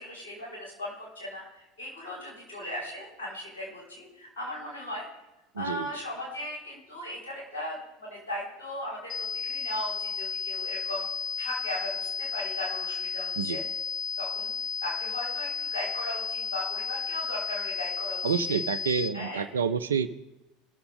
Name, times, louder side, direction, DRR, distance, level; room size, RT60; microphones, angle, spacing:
voice 1, 0.0-5.1 5.6-11.0 11.4-13.6 14.2-14.5 14.8-18.6 19.1-19.5, left 1 dB, 70° left, -4 dB, 5.0 m, -37 dB
voice 2, 5.5-5.9 13.4-13.6 18.2-20.1, right 7 dB, 80° right, 12 dB, 0.5 m, -28 dB
sound 1, 9.1-19.1, left 6 dB, 55° left, 1.3 m, -33 dB
20.5 x 6.9 x 3.8 m, 1.0 s
figure-of-eight pair, 75°, 0 cm